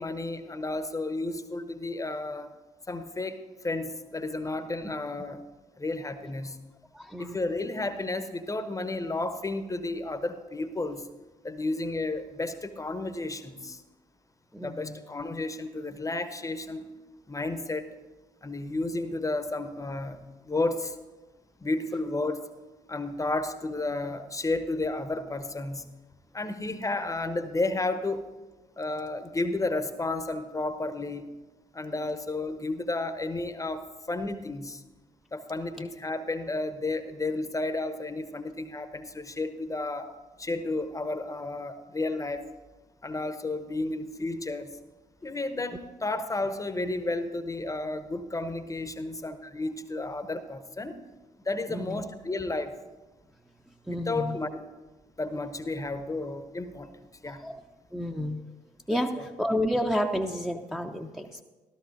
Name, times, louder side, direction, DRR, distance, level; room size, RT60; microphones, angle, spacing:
voice 1, 0.0-2.5 2.9-5.4 5.8-6.6 7.2-11.1 11.4-13.8 14.6-16.9 17.3-17.9 18.4-21.0 21.6-22.4 22.9-25.9 26.3-28.3 28.8-31.3 31.7-34.8 35.3-40.1 40.4-42.5 43.0-44.7 45.2-50.9 51.4-52.8 53.9-54.6 55.2-56.9 57.2-57.4 58.9-59.3, left 2 dB, 20° left, 11 dB, 0.9 m, -32 dB
voice 2, 6.9-7.4 14.5-14.9 35.8-35.9 51.7-52.0 53.9-54.4 57.4-57.6 57.9-58.4 58.9-61.4, equal, 5° right, 2 dB, 0.7 m, -30 dB
14.0 x 13.0 x 2.6 m, 1.2 s
figure-of-eight pair, 40°, 17 cm